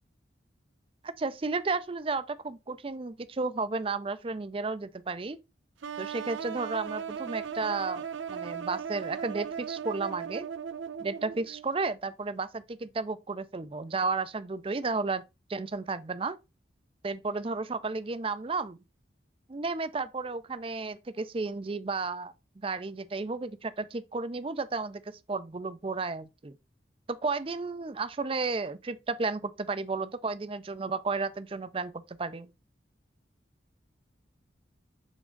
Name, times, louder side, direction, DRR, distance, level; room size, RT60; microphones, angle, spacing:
voice 1, 1.2-5.4 6.0-8.0 8.3-10.5 11.0-15.2 15.5-16.4 17.0-18.8 19.5-22.3 22.6-25.0 25.3-26.6 27.1-32.5, right 3 dB, 30° right, 0.4 m, -33 dB
sound 1, 5.8-11.6, right 7 dB, 90° right, 0.5 m, -37 dB
7.1 x 3.6 x 3.8 m
head